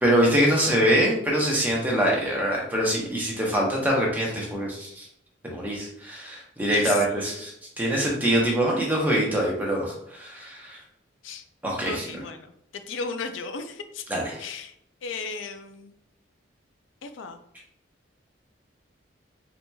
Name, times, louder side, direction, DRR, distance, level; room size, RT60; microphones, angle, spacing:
voice 1, 0.0-5.1 5.5-10.8 11.6-12.1 14.1-14.4, equal, 10° right, -3 dB, 0.8 m, -24 dB
voice 2, 6.7-7.4 11.2-11.4 11.8-12.4 12.7-14.0 14.4-14.7 15.0-15.9 17.0-17.4, left 5 dB, 80° left, 8 dB, 0.4 m, -35 dB
4.3 x 2.8 x 2.3 m, 0.73 s
head